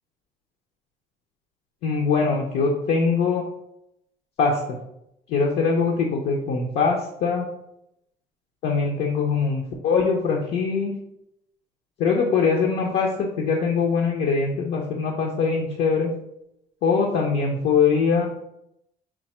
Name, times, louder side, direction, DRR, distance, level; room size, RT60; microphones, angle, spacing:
voice 1, 1.8-3.4 4.4-4.8 5.3-7.5 8.6-10.9 12.0-16.1 16.8-18.3, left 5 dB, 75° left, 0 dB, 0.7 m, -22 dB
4.6 x 2.1 x 4.1 m, 0.79 s
cardioid pair, 110°, 17 cm